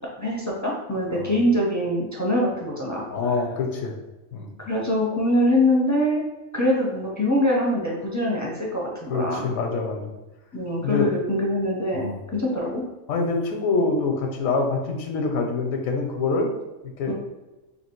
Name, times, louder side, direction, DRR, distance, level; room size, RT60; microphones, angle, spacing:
voice 1, 0.2-3.0 4.6-6.2 6.5-9.5 10.5-12.8 17.1-17.2, left 1 dB, 20° left, -3 dB, 0.5 m, -23 dB
voice 2, 3.1-3.9 4.3-4.5 9.1-10.1 10.8-11.1 11.9-12.2 13.1-16.5 17.0-17.1, left 3 dB, 85° left, 3 dB, 1.1 m, -25 dB
3.3 x 2.8 x 4.4 m, 1.1 s
omnidirectional pair, 1.4 m